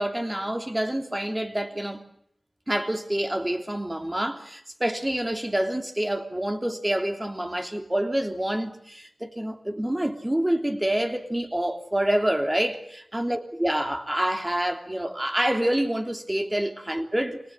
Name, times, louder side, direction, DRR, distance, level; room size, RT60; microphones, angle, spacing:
voice 1, 0.0-2.0 2.7-17.4, right 1 dB, 20° right, 3.2 m, -27 dB
26.5 x 19.0 x 10.0 m
cardioid pair, 40°, 0 cm